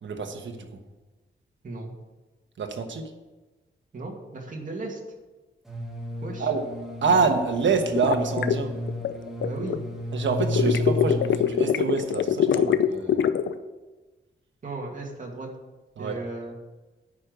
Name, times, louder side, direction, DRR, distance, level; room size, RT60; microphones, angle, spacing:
voice 1, 0.0-0.8 2.6-3.1 6.4-6.6 7.0-8.7 10.1-13.2 16.0-16.2, right 4 dB, 70° right, 4 dB, 1.3 m, -26 dB
voice 2, 3.9-5.0 6.2-6.5 9.4-9.8 14.6-15.5 16.0-16.5, right 2 dB, 40° right, -1 dB, 2.4 m, -35 dB
sound 1, 5.7-11.7, left 1 dB, ahead, 2.0 m, -32 dB
sound 2, 7.9-9.8 10.4-13.5, left 9 dB, 70° left, 0.6 m, -23 dB
9.6 x 5.4 x 7.9 m, 1.2 s
wide cardioid pair, 125°, 20 cm